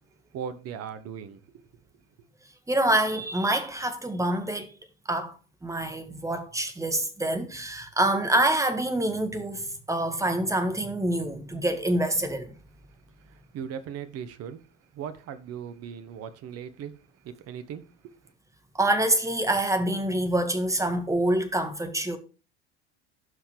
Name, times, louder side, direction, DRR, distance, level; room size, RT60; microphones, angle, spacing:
voice 1, 0.3-1.7 13.3-14.7 14.9-18.2, right 8 dB, 45° right, 1.2 m, -39 dB
voice 2, 2.7-4.7 5.1-5.3 5.6-12.5 18.8-22.2, right 1 dB, 10° right, 1.8 m, -26 dB
16.0 x 5.8 x 3.3 m
figure-of-eight pair, 65°, 34 cm